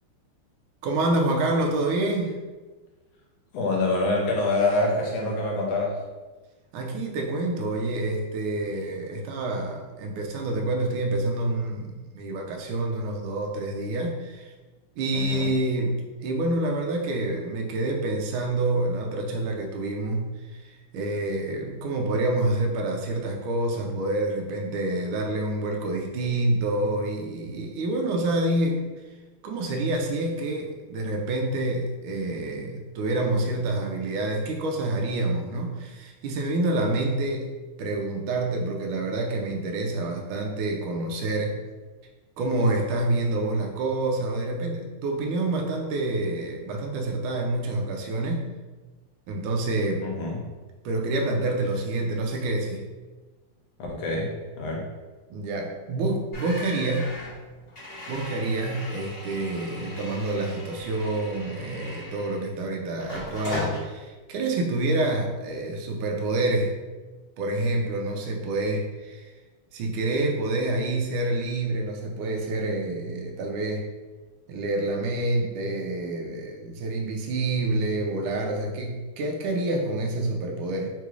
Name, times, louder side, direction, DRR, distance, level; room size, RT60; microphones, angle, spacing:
voice 1, 0.8-2.4 6.7-14.5 15.0-28.8 29.4-37.5 37.8-41.6 42.4-48.5 49.3-50.1 50.8-52.8 55.3-57.1 58.1-66.7 67.4-69.3 69.7-73.9 74.5-80.9, right 2 dB, 80° right, 1 dB, 1.3 m, -27 dB
voice 2, 3.5-6.0 15.1-15.5 50.0-50.4 53.9-54.9, left 2 dB, 75° left, -1 dB, 1.4 m, -26 dB
sound 1, 56.3-62.6 63.0-63.8, left 1 dB, 30° left, 1.5 m, -37 dB
3.7 x 3.0 x 2.4 m, 1.3 s
omnidirectional pair, 2.3 m